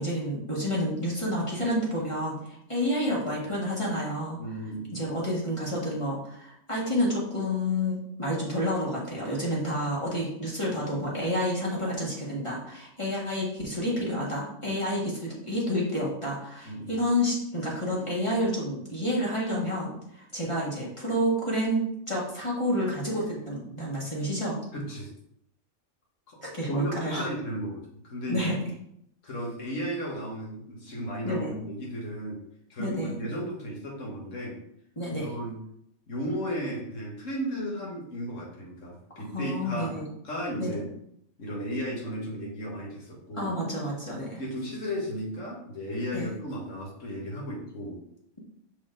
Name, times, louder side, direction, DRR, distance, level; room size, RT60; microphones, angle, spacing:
voice 1, 0.0-4.4 4.9-24.6 26.4-27.3 28.3-28.6 31.2-31.6 32.8-33.2 34.9-35.3 39.3-40.1 40.6-40.7 43.4-44.4 46.1-46.3, equal, 25° left, -6 dB, 1.7 m, -29 dB
voice 2, 4.4-5.0 16.6-17.0 24.7-25.1 26.3-26.4 26.7-28.6 29.2-32.4 32.7-34.6 35.1-35.6 36.1-40.0 40.2-40.9 41.4-43.5 44.3-48.0, equal, 80° left, -3 dB, 1.9 m, -35 dB
6.0 x 4.2 x 3.8 m, 0.74 s
omnidirectional pair, 1.3 m